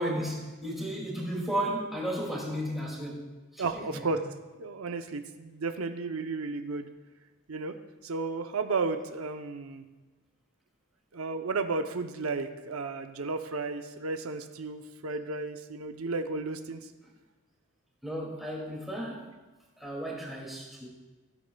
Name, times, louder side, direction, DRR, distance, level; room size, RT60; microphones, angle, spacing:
voice 1, 0.0-3.3 3.5-4.1 18.0-19.3 19.8-20.9, right 1 dB, ahead, -4 dB, 2.3 m, -34 dB
voice 2, 3.6-4.2 4.6-6.9 7.5-7.8 8.0-9.8 11.1-16.9, right 3 dB, 90° right, 7 dB, 0.7 m, -33 dB
16.0 x 10.5 x 2.3 m, 1.2 s
head